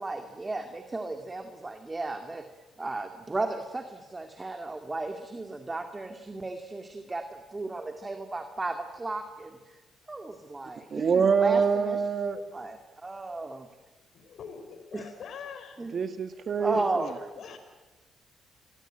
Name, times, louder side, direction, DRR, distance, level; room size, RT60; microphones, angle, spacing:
voice 1, 0.0-2.5 2.8-9.8 10.1-12.0 12.5-13.7 14.9-15.1 15.8-15.9 16.6-17.3, right 2 dB, 20° right, 6 dB, 2.2 m, -35 dB
voice 2, 10.9-12.4 15.9-17.1, right 6 dB, 50° right, 8 dB, 1.8 m, -25 dB
voice 3, 14.1-15.9 16.7-17.6, left 6 dB, 65° left, 8 dB, 5.5 m, -44 dB
30.0 x 22.0 x 9.0 m, 1.1 s
cardioid pair, 90°, 0 cm